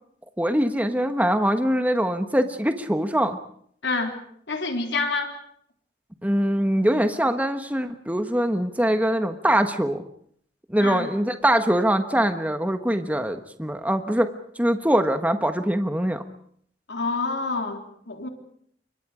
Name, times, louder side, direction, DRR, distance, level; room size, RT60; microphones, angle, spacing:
voice 1, 0.4-3.4 6.2-10.0 10.7-14.3 14.6-16.2, right 1 dB, 10° right, 8 dB, 1.3 m, -23 dB
voice 2, 3.8-4.2 4.5-5.3 10.8-11.1 16.9-18.3, left 3 dB, 80° left, 4 dB, 3.6 m, -27 dB
28.5 x 23.5 x 5.0 m, 0.64 s
head